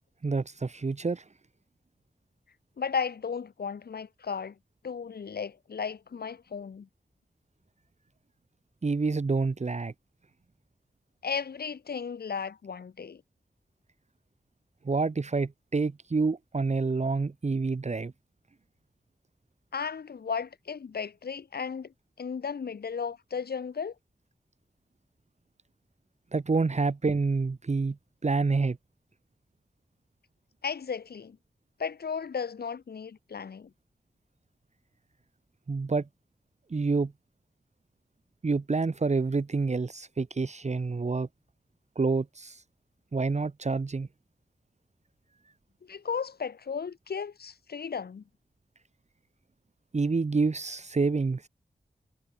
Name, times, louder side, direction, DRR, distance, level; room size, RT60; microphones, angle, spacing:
voice 1, 0.2-1.2 8.8-9.9 14.8-18.1 26.3-28.0 28.2-28.8 35.7-36.1 36.7-37.1 38.4-41.3 41.9-42.6 43.1-44.1 49.9-51.5, right 4 dB, 45° right, 1.2 m, -28 dB
voice 2, 2.8-4.5 4.8-6.9 11.2-13.2 19.7-23.9 30.6-31.4 31.8-33.7 45.8-48.2, left 6 dB, 90° left, 1.6 m, -35 dB
cardioid pair, 55°, 16 cm